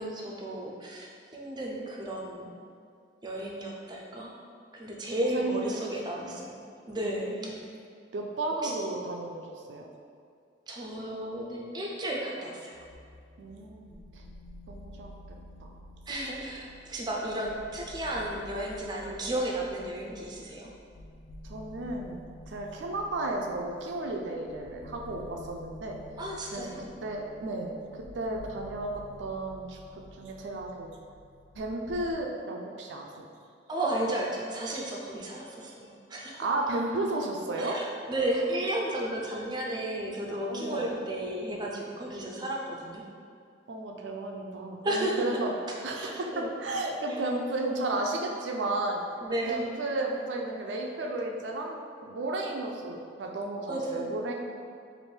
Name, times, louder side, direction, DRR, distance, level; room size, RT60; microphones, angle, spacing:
voice 1, 0.0-2.5 3.2-4.3 4.7-6.6 6.9-7.6 8.6-8.7 10.7-12.9 16.1-20.7 26.2-26.9 33.7-36.5 37.6-43.0 44.8-45.3 46.0-46.5 47.1-47.2 49.2-49.7 53.7-54.2, right 1 dB, 25° right, -2 dB, 0.5 m, -33 dB
voice 2, 5.2-6.5 7.1-7.5 8.1-9.4 9.7-9.9 13.4-14.2 14.7-15.1 15.6-15.8 21.5-22.2 22.5-26.0 26.5-26.7 27.0-31.0 31.6-33.3 36.4-37.8 40.5-40.9 43.7-45.5 45.8-49.0 49.5-54.3, right 2 dB, 90° right, 1 dB, 0.4 m, -33 dB
sound 1, 12.7-32.1, left 1 dB, 60° left, 0.4 m, -50 dB
3.3 x 2.5 x 4.4 m, 2.3 s
head